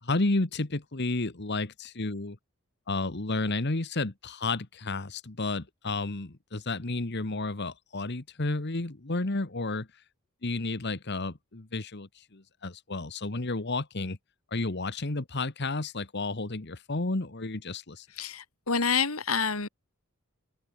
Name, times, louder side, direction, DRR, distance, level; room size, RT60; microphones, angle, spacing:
voice 1, 0.0-2.4 2.9-10.0 10.4-14.2 14.5-18.1, left 2 dB, 50° left, 1.4 m, -31 dB
voice 2, 18.2-19.7, left 5 dB, 80° left, 3.0 m, -28 dB
open air
head